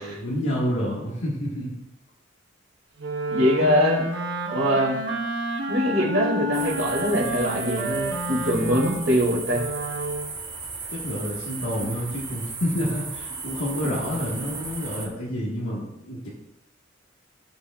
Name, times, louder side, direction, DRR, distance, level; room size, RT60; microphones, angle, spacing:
voice 1, 0.0-1.8 10.9-16.3, equal, 90° left, -5 dB, 1.6 m, -29 dB
Wind instrument woodwind instrument, 3.0-10.4, right 1 dB, 65° right, 1.1 m, -30 dB
voice 2, 3.3-4.1 4.5-5.0 5.7-9.7, equal, 85° right, -2 dB, 2.6 m, -23 dB
sound 1, 6.5-15.1, right 4 dB, 25° right, 1.7 m, -36 dB
14.5 x 6.1 x 2.4 m, 0.86 s
head